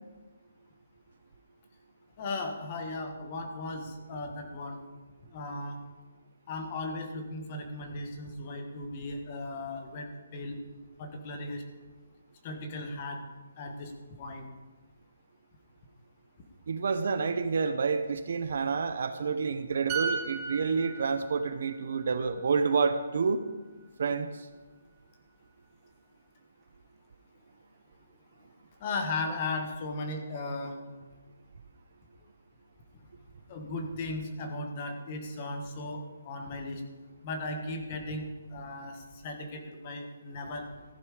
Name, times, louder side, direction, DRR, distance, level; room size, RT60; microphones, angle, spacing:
voice 1, 2.2-4.8 5.3-5.8 6.5-10.5 11.0-11.6 12.4-13.2 13.6-13.9 14.2-14.4 28.8-30.8 33.5-36.8 37.2-38.3 38.5-40.7, left 2 dB, 20° left, 4 dB, 1.4 m, -36 dB
voice 2, 16.7-23.4 24.0-24.3, right 5 dB, 45° right, 10 dB, 0.8 m, -28 dB
sound 1, 19.9-23.5 23.8-24.1, right 6 dB, 15° right, 1.1 m, -38 dB
14.5 x 10.5 x 5.0 m, 1.2 s
hypercardioid pair, 175°, 0 cm